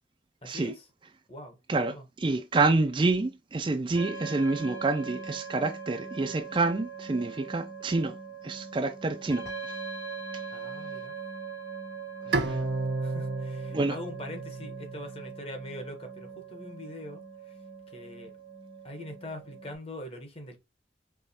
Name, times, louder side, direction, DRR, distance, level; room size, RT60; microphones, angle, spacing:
voice 1, 0.4-0.9 1.3-1.6 1.9-2.0 10.5-11.2 12.2-12.7 13.0-17.6 17.9-18.3 18.8-20.6, left 1 dB, 30° left, 1.1 m, -43 dB
voice 2, 2.2-8.1 8.4-9.5 13.7-13.9, right 3 dB, 25° right, 0.4 m, -27 dB
sound 1, 3.9-19.7, right 5 dB, 65° left, 2.8 m, -41 dB
Bowed string instrument, 12.3-15.6, right 3 dB, 65° right, 0.6 m, -32 dB
4.8 x 3.0 x 2.8 m
head